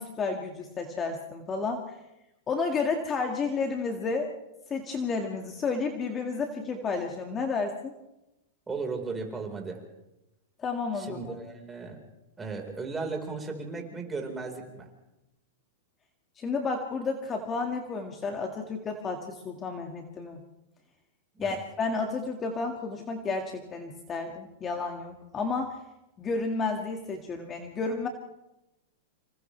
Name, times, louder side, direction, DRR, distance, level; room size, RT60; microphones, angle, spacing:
voice 1, 0.0-1.9 2.5-4.3 4.7-7.9 10.6-11.3 16.4-20.4 21.4-25.8 26.2-28.1, left 4 dB, 25° left, 3 dB, 2.0 m, -31 dB
voice 2, 8.7-9.8 11.0-12.0 12.4-14.9 21.3-21.6, right 4 dB, 15° right, 2 dB, 4.6 m, -36 dB
28.5 x 27.0 x 3.4 m, 0.91 s
hypercardioid pair, 130°, 0 cm